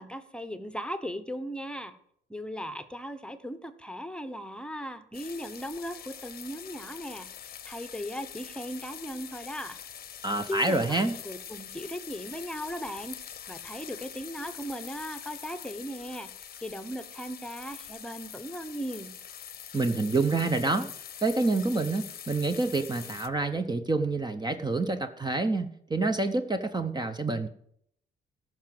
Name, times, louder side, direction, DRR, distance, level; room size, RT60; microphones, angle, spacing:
voice 1, 0.0-2.0 2.3-9.8 10.5-13.2 13.5-19.1, equal, 5° left, 11 dB, 1.0 m, -38 dB
sound 1, 5.1-23.3, left 9 dB, 50° left, 0.8 m, -44 dB
voice 2, 10.2-11.1 19.7-20.9 21.2-27.5, right 3 dB, 20° right, 8 dB, 0.9 m, -27 dB
13.5 x 6.1 x 7.6 m, 0.69 s
cardioid pair, 90°, 20 cm